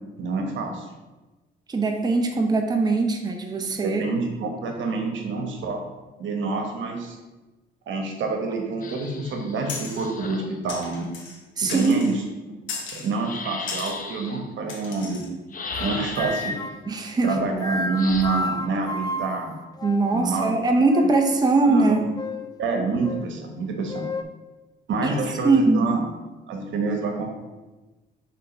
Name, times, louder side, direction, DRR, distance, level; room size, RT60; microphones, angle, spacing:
voice 1, 0.2-0.9 3.8-5.8 6.2-7.2 7.9-11.1 11.6-12.2 12.9-15.3 15.8-16.5 17.2-19.5 20.1-20.6 21.6-22.1 22.6-24.1 24.9-26.0 26.5-27.3, right 3 dB, 70° right, 3 dB, 1.2 m, -27 dB
voice 2, 1.7-4.1 11.6-11.9 16.9-17.4 19.8-22.1 25.0-25.1 25.4-25.9, right 3 dB, 20° right, 3 dB, 0.6 m, -21 dB
sound 1, 8.8-10.6 13.1-14.4 15.5-16.6 18.0-18.2, left 4 dB, 45° left, 0.8 m, -36 dB
sound 2, 9.7-10.1 10.7-11.4 11.7-12.2 12.7-13.1 13.7-14.0 14.7-15.3, left 4 dB, 75° left, 1.3 m, -35 dB
sound 3, 15.7-16.9 17.2-20.4 20.9-21.5 22.1-22.5 23.0-23.2 23.9-24.2, left 2 dB, 20° left, 0.4 m, -32 dB
5.7 x 3.6 x 5.2 m, 1.1 s
cardioid pair, 90°, 20 cm